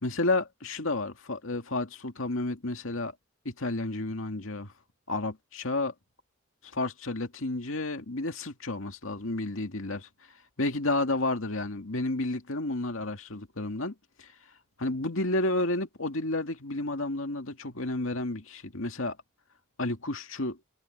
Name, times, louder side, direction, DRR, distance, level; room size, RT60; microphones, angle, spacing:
voice 1, 0.0-3.1 3.4-4.7 5.1-5.9 6.6-14.3 14.8-19.2 19.8-20.6, left 2 dB, 75° left, 2.2 m, -31 dB
head